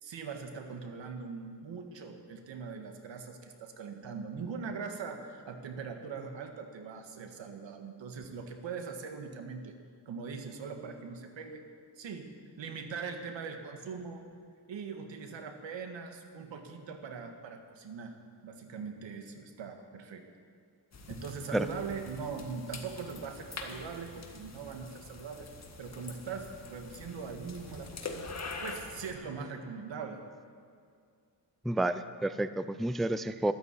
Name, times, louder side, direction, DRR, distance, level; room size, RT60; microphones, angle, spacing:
voice 1, 0.0-9.7 10.1-11.7 12.0-12.3 12.6-14.2 14.7-18.2 18.4-20.2 21.1-25.5 25.8-28.3 28.6-30.2, right 5 dB, 90° right, 5 dB, 1.8 m, -41 dB
sound 1, 20.9-29.1, left 3 dB, 35° left, 1.9 m, -45 dB
voice 2, 31.6-33.5, right 1 dB, ahead, 12 dB, 0.4 m, -30 dB
13.5 x 12.5 x 8.5 m, 2.2 s
wide cardioid pair, 120°, 43 cm